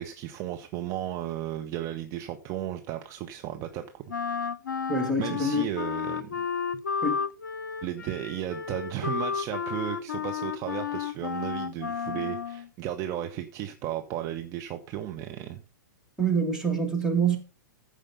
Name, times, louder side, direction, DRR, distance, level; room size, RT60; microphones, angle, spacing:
voice 1, 0.0-4.0 5.2-6.5 7.8-15.6, right 12 dB, 30° right, 0.9 m, -34 dB
Wind instrument woodwind instrument, 4.1-12.7, left 6 dB, 65° left, 0.7 m, -32 dB
voice 2, 4.9-5.6 7.0-7.2 16.2-17.4, right 3 dB, 5° right, 2.3 m, -25 dB
14.0 x 5.0 x 5.4 m
figure-of-eight pair, 105°, 11 cm